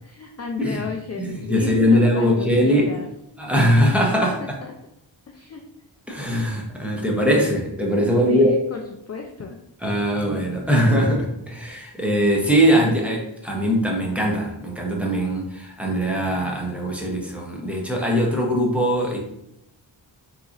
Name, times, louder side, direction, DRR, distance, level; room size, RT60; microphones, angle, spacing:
voice 1, 0.0-3.1 4.2-4.7 5.3-5.6 8.3-9.6, left 5 dB, 35° left, 2 dB, 0.4 m, -33 dB
voice 2, 1.2-2.9 3.4-4.3 6.1-8.5 9.8-19.2, equal, 5° right, -2 dB, 0.9 m, -21 dB
3.7 x 3.0 x 2.5 m, 0.80 s
wide cardioid pair, 60°, 47 cm